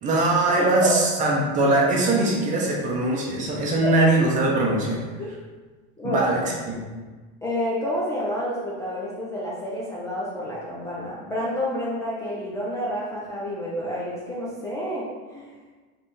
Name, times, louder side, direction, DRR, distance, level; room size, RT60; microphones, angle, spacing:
voice 1, 0.0-5.0 6.0-6.8, right 2 dB, 25° right, -3 dB, 0.8 m, -21 dB
voice 2, 6.0-6.3 7.4-15.5, equal, 10° left, -7 dB, 0.5 m, -29 dB
3.4 x 3.3 x 4.2 m, 1.4 s
cardioid pair, 160°, 29 cm